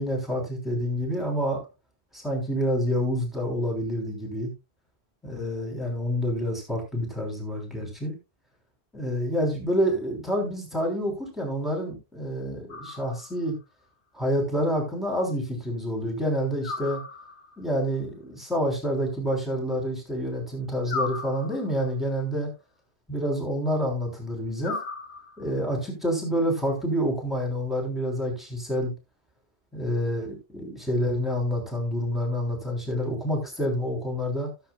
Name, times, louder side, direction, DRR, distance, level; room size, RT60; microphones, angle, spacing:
voice 1, 0.0-1.6 2.1-4.5 5.2-8.1 8.9-13.5 14.1-17.0 17.6-22.5 23.1-24.8 25.4-28.9 29.7-34.5, equal, ahead, -1 dB, 3.4 m, -28 dB
sound 1, 12.7-13.5 16.6-17.6 20.9-21.9 24.6-25.6, left 4 dB, 85° left, 1.6 m, -36 dB
16.0 x 7.7 x 2.3 m, 0.26 s
omnidirectional pair, 1.1 m